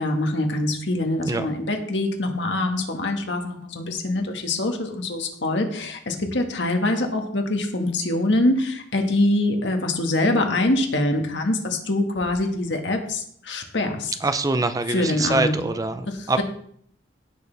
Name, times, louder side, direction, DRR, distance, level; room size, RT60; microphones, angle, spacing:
voice 1, 0.0-14.1 14.9-15.6, left 1 dB, 70° left, 4 dB, 1.7 m, -24 dB
voice 2, 14.2-16.4, right 2 dB, 20° right, 10 dB, 0.5 m, -24 dB
16.5 x 6.6 x 3.4 m, 0.64 s
head